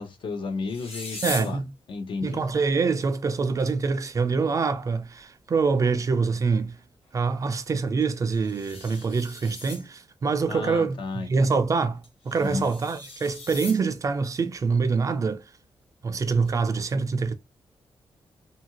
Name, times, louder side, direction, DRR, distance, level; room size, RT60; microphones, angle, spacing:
voice 1, 0.0-1.6 1.9-2.4 10.5-11.6 12.4-12.7, left 4 dB, 55° left, 0.7 m, -33 dB
sound 1, 0.7-1.5 3.6-3.7 3.9-4.0 4.6-4.7 8.0-9.9 12.0-13.8 16.2-16.5, left 3 dB, 80° left, 1.3 m, -39 dB
voice 2, 1.2-1.7 2.2-6.8 7.1-15.4 16.0-17.3, right 4 dB, 35° right, 0.3 m, -25 dB
2.7 x 2.5 x 2.8 m
wide cardioid pair, 165°, 10 cm